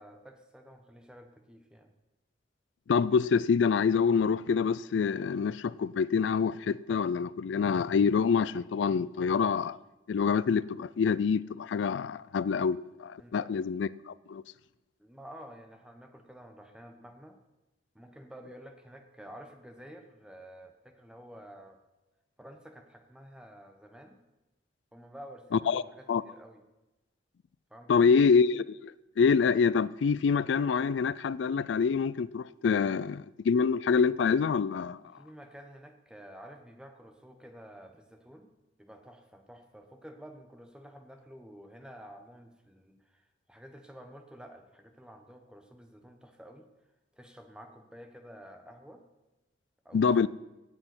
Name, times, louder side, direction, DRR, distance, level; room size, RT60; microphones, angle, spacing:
voice 1, 0.0-1.9 13.2-13.5 15.0-17.4 17.9-21.8 22.4-24.2 24.9-26.6 27.7-28.2 35.1-38.5 38.8-46.7 47.1-49.0 49.8-50.1, equal, 5° right, 1.1 m, -50 dB
voice 2, 2.9-9.8 10.1-14.4 25.7-25.8 26.1-26.2 27.9-35.0 49.9-50.3, left 5 dB, 85° left, 0.4 m, -26 dB
17.0 x 7.7 x 6.0 m
head